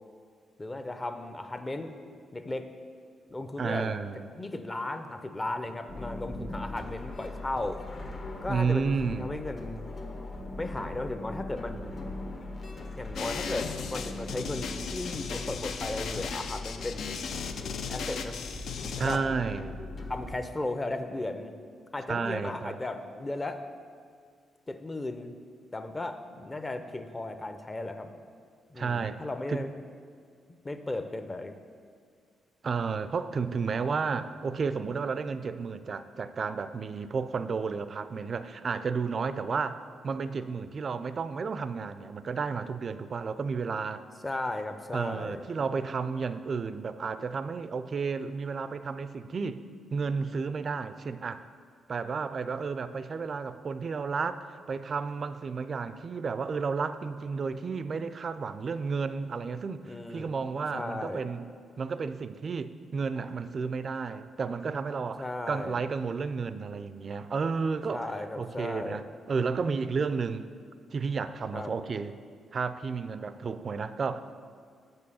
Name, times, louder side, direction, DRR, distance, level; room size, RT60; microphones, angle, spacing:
voice 1, 0.6-1.9 2.3-2.7 3.3-4.0 4.3-7.8 8.4-9.9 10.6-11.9 13.0-17.2 17.9-18.4 19.0-19.2 20.1-21.5 21.9-23.6 24.7-25.3 25.7-28.1 28.7-29.7 30.5-31.5 44.2-45.5 59.8-60.4 60.7-61.3 65.2-65.8 67.9-69.0 71.5-71.7, left 2 dB, 25° left, 8 dB, 0.6 m, -35 dB
voice 2, 3.6-4.3 8.5-9.3 19.0-19.9 22.1-22.8 28.8-29.2 29.5-29.6 32.6-44.0 44.9-49.6 49.9-51.4 51.9-61.5 61.8-68.1 68.4-70.5 70.9-72.1 72.5-74.2, right 5 dB, 50° right, 12 dB, 0.4 m, -32 dB
sound 1, 5.9-20.3, left 2 dB, 50° left, 1.1 m, -40 dB
sound 2, 13.2-19.2, left 6 dB, 70° left, 0.4 m, -37 dB
6.2 x 5.4 x 6.9 m, 2.1 s
cardioid pair, 70°, 0 cm